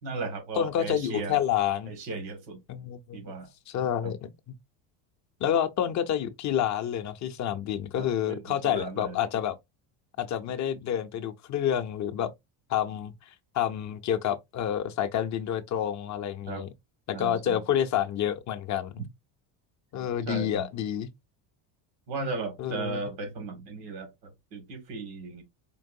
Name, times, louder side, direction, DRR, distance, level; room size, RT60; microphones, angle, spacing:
voice 1, 0.0-1.4 1.8-2.6 3.1-3.5 4.0-4.2 8.0-9.2 16.5-16.7 17.1-17.6 20.3-20.7 22.1-25.4, right 3 dB, 85° right, 2.0 m, -36 dB
voice 2, 0.6-1.9 2.7-3.3 3.7-4.3 5.4-9.6 10.2-12.3 12.7-16.7 17.1-19.1 19.9-21.1 22.6-23.0, left 10 dB, 40° left, 0.5 m, -29 dB
4.6 x 3.0 x 2.6 m
cardioid pair, 125°, 48 cm